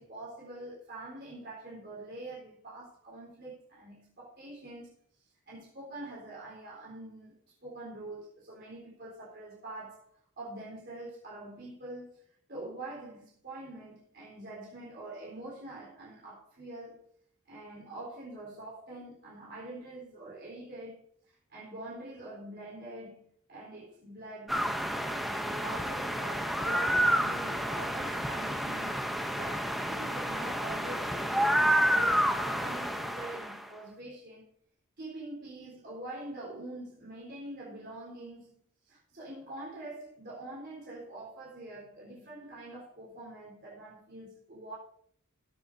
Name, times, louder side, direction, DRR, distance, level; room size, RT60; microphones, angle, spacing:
voice 1, 0.0-4.9 5.5-7.4 7.6-12.2 12.5-17.0 17.5-24.7 24.9-29.0 29.3-34.5 35.0-38.5 38.8-44.7, right 2 dB, 45° right, 3.8 m, -45 dB
sound 1, 24.5-33.6, equal, ahead, 0.7 m, -29 dB
19.5 x 7.4 x 2.7 m
head